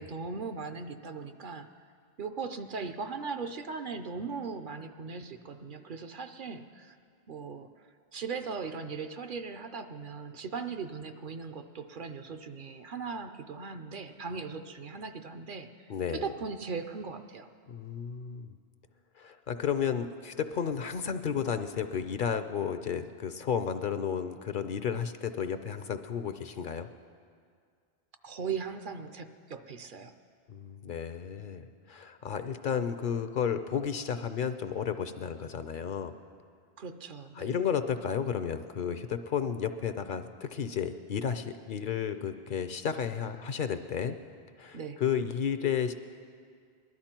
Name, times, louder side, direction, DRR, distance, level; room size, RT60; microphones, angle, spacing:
voice 1, 0.0-1.7 2.2-7.0 7.3-17.5 28.2-30.2 36.8-37.7 44.7-45.0, right 5 dB, 55° right, 8 dB, 0.7 m, -39 dB
voice 2, 15.9-16.3 17.7-18.5 19.2-26.9 30.5-36.1 37.4-44.1 44.6-45.9, left 7 dB, 60° left, 10 dB, 0.7 m, -32 dB
20.0 x 12.0 x 4.4 m, 2.1 s
omnidirectional pair, 1.1 m